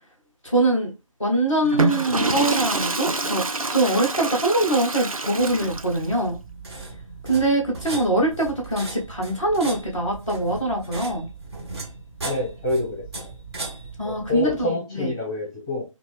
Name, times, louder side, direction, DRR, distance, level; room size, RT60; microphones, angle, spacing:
voice 1, 0.4-0.9 1.2-6.4 7.2-11.3 14.0-15.1, right 2 dB, 5° right, 0.4 m, -23 dB
Water / Toilet flush, 1.6-6.1, right 3 dB, 85° right, 0.6 m, -26 dB
sound 1, 5.4-14.7, right 3 dB, 50° right, 0.8 m, -37 dB
voice 2, 12.2-13.0 14.0-15.8, left 2 dB, 10° left, 0.9 m, -27 dB
2.8 x 2.4 x 3.3 m
figure-of-eight pair, 155°, 17 cm